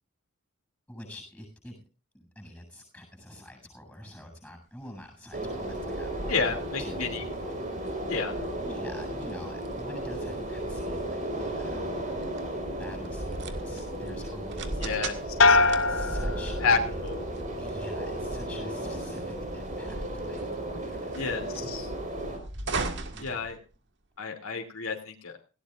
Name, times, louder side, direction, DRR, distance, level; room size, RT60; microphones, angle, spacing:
voice 1, 0.9-1.8 2.1-7.3 7.6-7.7 8.6-11.9 12.8-15.3 15.8-17.0 17.6-21.3 23.1-23.5, left 1 dB, 5° left, 4 dB, 7.9 m, -46 dB
sound 1, 4.8-24.2, right 4 dB, 55° right, 1.8 m, -42 dB
sound 2, 5.3-22.4, right 1 dB, 35° right, 4.8 m, -34 dB
voice 2, 6.3-7.2 8.1-8.3 14.8-15.6 16.6-17.2 21.1-21.9 23.2-23.6 24.2-25.3, left 4 dB, 80° left, 3 dB, 2.8 m, -30 dB
sound 3, 15.4-17.1 17.5-18.1, left 3 dB, 60° left, 0.9 m, -24 dB
19.0 x 17.5 x 2.5 m, 0.35 s
head